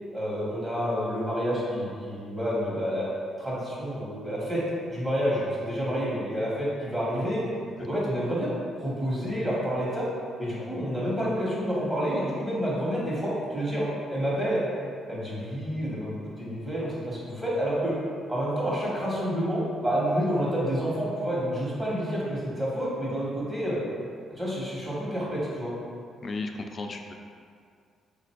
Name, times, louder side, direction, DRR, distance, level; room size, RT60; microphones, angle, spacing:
voice 1, 0.1-3.1 3.4-4.6 4.9-7.4 7.8-8.5 8.8-10.1 10.4-14.6 15.1-18.0 18.3-23.8 24.4-25.7, equal, 20° right, -7 dB, 1.2 m, -29 dB
voice 2, 7.5-7.9 26.2-27.1, left 3 dB, 40° left, 4 dB, 0.4 m, -35 dB
3.7 x 2.5 x 4.4 m, 2.3 s
cardioid pair, 90°, 0 cm